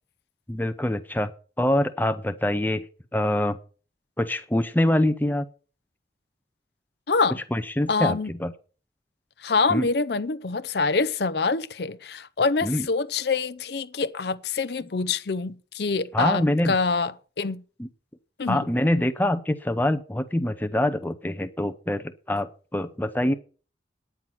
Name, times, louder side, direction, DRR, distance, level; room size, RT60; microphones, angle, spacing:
voice 1, 0.5-1.3 1.6-2.8 3.1-3.6 4.2-5.5 7.5-8.5 9.7-9.9 12.6-12.9 16.1-16.8 17.8-17.9 18.5-23.3, left 1 dB, 10° left, 0.6 m, -25 dB
voice 2, 7.1-7.4 7.9-8.3 9.4-17.6 18.4-18.7, left 4 dB, 60° left, 0.6 m, -25 dB
9.7 x 9.2 x 5.9 m
head